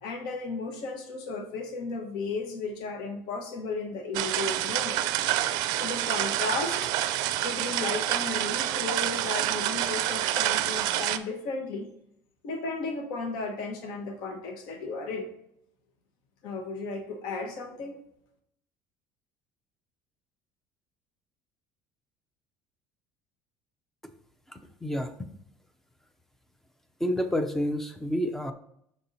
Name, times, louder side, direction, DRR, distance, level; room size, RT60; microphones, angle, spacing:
voice 1, 0.0-5.1 5.8-6.9 7.4-11.9 12.4-15.3 16.4-18.0, left 3 dB, 70° left, 4 dB, 1.0 m, -34 dB
sound 1, 4.1-11.2, right 13 dB, 65° right, 0.4 m, -28 dB
voice 2, 24.5-25.3 27.0-28.5, equal, 5° left, 8 dB, 0.4 m, -29 dB
6.1 x 4.3 x 3.9 m, 0.72 s
cardioid pair, 175°, 7 cm